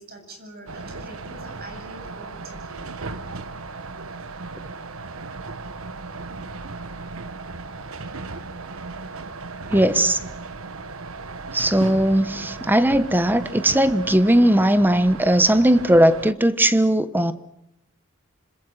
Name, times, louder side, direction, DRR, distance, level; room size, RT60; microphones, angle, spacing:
voice 1, 0.0-2.9, right 2 dB, 50° right, 7.9 m, -43 dB
sound 1, 0.7-16.3, right 3 dB, 85° right, 1.3 m, -36 dB
voice 2, 9.7-10.2 11.5-17.3, right 1 dB, 10° right, 1.1 m, -18 dB
26.5 x 26.5 x 6.5 m
head